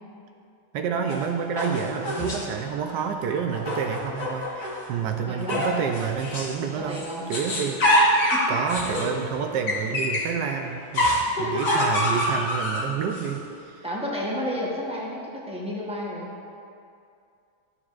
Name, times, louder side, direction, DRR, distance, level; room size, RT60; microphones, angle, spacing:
voice 1, 0.7-7.8 8.5-11.1 11.4-13.8, right 7 dB, 85° right, 4 dB, 1.2 m, -29 dB
sound 1, 1.1-2.6 3.5-4.9 5.5-6.6 6.9-10.4 10.9-13.3, left 1 dB, 50° left, 1.3 m, -25 dB
voice 2, 5.2-5.6 6.8-7.2 8.3-8.5 8.9-9.0 11.3-11.8 13.8-16.3, left 1 dB, 5° right, -5 dB, 0.7 m, -31 dB
12.5 x 6.9 x 2.5 m, 2.5 s
omnidirectional pair, 1.8 m